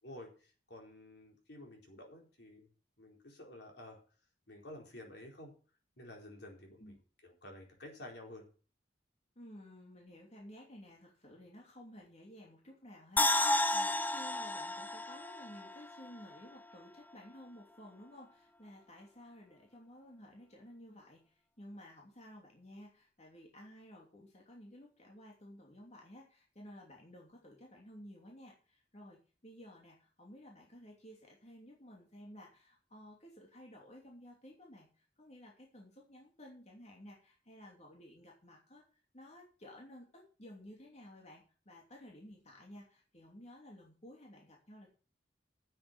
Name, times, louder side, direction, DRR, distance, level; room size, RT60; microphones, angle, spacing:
voice 1, 0.0-2.7 3.0-4.0 4.5-5.5 6.0-7.0 7.2-8.5, left 1 dB, 65° left, 0 dB, 4.3 m, -51 dB
voice 2, 9.4-38.8 39.1-44.9, equal, 40° left, -1 dB, 2.9 m, -54 dB
sound 1, 13.2-16.4 16.7-16.8, left 1 dB, 10° left, 0.5 m, -32 dB
9.8 x 7.9 x 7.0 m, 0.38 s
head